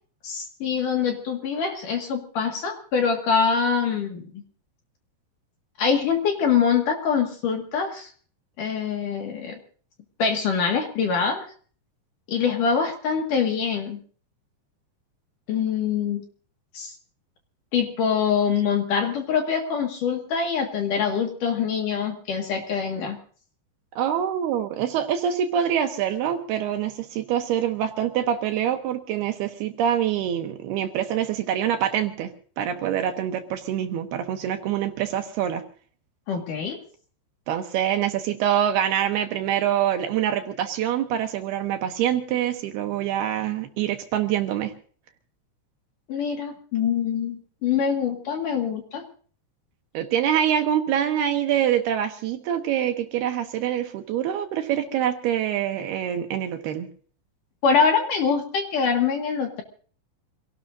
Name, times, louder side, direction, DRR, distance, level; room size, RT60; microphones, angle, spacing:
voice 1, 0.2-4.4 5.8-8.1 8.6-9.6 10.2-11.5 12.3-14.0 15.5-16.2 16.7-16.9 17.7-23.2 36.3-36.8 46.1-49.0 57.6-59.6, left 6 dB, 55° left, 3 dB, 2.9 m, -24 dB
voice 2, 24.0-32.3 32.6-35.6 37.5-44.7 49.9-56.9, right 10 dB, 70° right, 6 dB, 2.9 m, -25 dB
27.0 x 17.5 x 2.6 m, 0.43 s
omnidirectional pair, 5.2 m